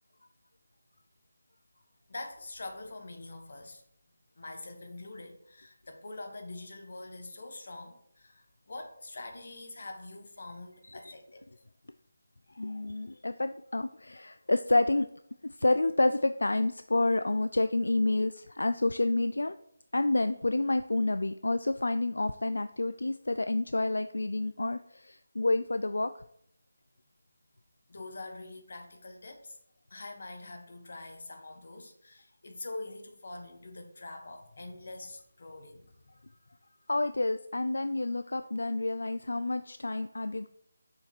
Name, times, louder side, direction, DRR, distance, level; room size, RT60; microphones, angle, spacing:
voice 1, 2.1-3.8 4.4-11.5 12.9-13.2 27.9-29.6 29.9-36.2, left 2 dB, 60° left, 5 dB, 1.3 m, -44 dB
voice 2, 12.6-15.1 15.6-19.6 19.9-26.1 36.9-40.5, left 2 dB, 85° left, 11 dB, 0.3 m, -29 dB
6.5 x 5.2 x 4.4 m, 0.71 s
figure-of-eight pair, 165°, 0 cm